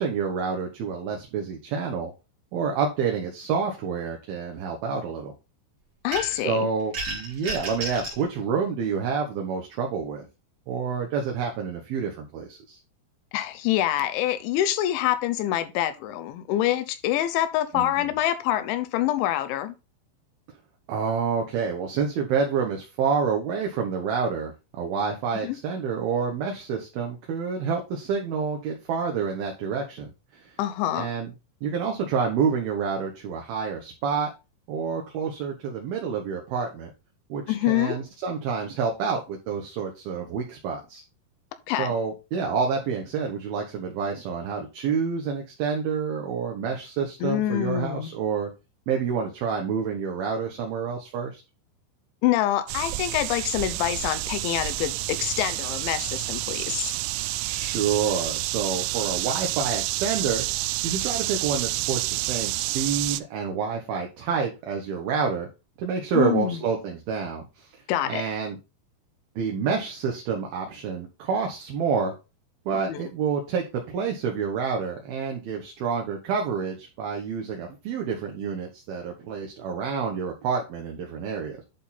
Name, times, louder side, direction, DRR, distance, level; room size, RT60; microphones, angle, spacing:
voice 1, 0.0-2.1 2.5-5.3 6.3-10.2 10.7-12.8 17.7-18.1 20.9-30.5 30.9-31.3 31.6-34.3 34.7-36.9 37.3-41.0 41.7-48.5 48.9-51.4 57.4-60.5 60.8-65.5 65.8-67.7 68.1-68.6 69.4-72.1 72.7-81.6, right 6 dB, 70° right, 2.4 m, -28 dB
voice 2, 6.0-6.7 13.3-19.7 25.4-25.6 30.6-31.1 37.5-38.0 41.7-41.9 47.2-48.1 52.2-56.9 66.1-66.6 67.9-68.2 72.9-73.0, left 13 dB, 80° left, 3.0 m, -26 dB
sound 1, 6.1-6.5 6.9-8.2, right 2 dB, 40° right, 2.2 m, -32 dB
sound 2, 52.7-63.2, right 18 dB, 85° right, 3.0 m, -29 dB
11.0 x 3.9 x 4.1 m
omnidirectional pair, 5.7 m